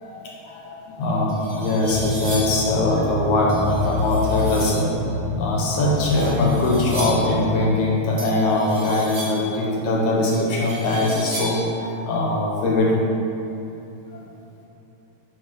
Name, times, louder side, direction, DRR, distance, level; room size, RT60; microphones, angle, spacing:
voice 1, 0.0-5.1 5.4-12.9, left 2 dB, 70° left, -3 dB, 1.9 m, -22 dB
sound 1, 0.8-0.9 1.3-2.7 3.5-4.9 5.9-7.4 8.2-9.5 10.3-11.7, equal, 40° right, 2.4 m, -35 dB
sound 2, 1.8-7.7, left 2 dB, 70° right, 1.7 m, -29 dB
8.4 x 7.8 x 3.8 m, 2.8 s
omnidirectional pair, 4.9 m